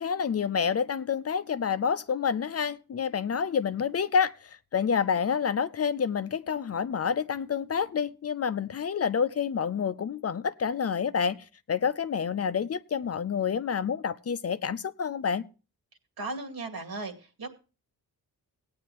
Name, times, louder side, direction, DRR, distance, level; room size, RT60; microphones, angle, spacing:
voice 1, 0.0-4.3 4.7-11.4 11.7-15.4, left 6 dB, 40° left, 0.5 m, -28 dB
voice 2, 16.2-17.1 17.4-17.5, right 3 dB, 80° right, 2.4 m, -35 dB
17.0 x 9.5 x 3.0 m
cardioid pair, 95°, 36 cm